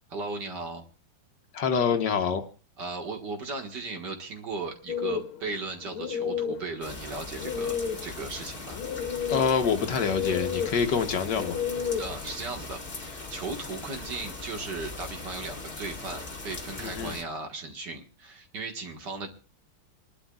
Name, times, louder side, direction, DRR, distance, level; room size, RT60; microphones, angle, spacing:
voice 1, 0.1-0.9 2.8-8.8 12.0-19.3, right 3 dB, 55° right, 4 dB, 2.2 m, -37 dB
voice 2, 1.5-2.4 9.3-11.6 16.8-17.2, left 6 dB, 60° left, 6 dB, 1.5 m, -26 dB
sound 1, 4.9-12.3, left 7 dB, 85° left, 1.8 m, -33 dB
sound 2, 6.8-17.2, left 3 dB, 30° left, 1.7 m, -40 dB
27.0 x 11.5 x 2.4 m, 0.35 s
omnidirectional pair, 2.3 m